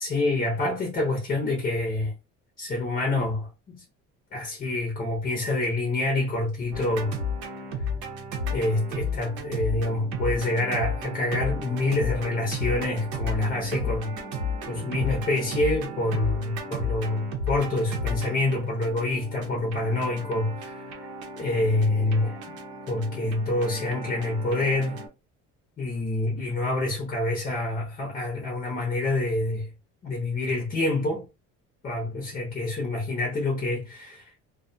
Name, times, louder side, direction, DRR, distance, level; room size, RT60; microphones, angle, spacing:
voice 1, 0.0-2.1 2.6-3.8 4.3-7.2 8.5-14.1 14.7-21.0 21.4-22.6 22.9-25.0 25.8-29.7 30.0-31.2 31.8-34.3, left 2 dB, 25° left, 0.6 m, -27 dB
sound 1, 6.7-25.1, left 2 dB, 75° right, 0.7 m, -33 dB
2.2 x 2.2 x 2.6 m
cardioid pair, 170°, 30 cm